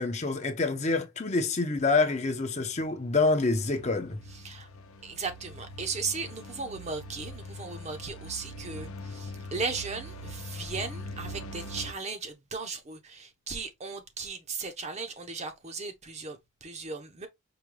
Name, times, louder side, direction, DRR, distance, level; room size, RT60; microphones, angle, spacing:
voice 1, 0.0-4.2, left 3 dB, 30° left, 0.6 m, -27 dB
sound 1, 2.4-11.9, left 1 dB, 75° left, 0.7 m, -43 dB
voice 2, 5.0-17.3, right 4 dB, 30° right, 0.7 m, -37 dB
4.8 x 2.2 x 3.1 m
head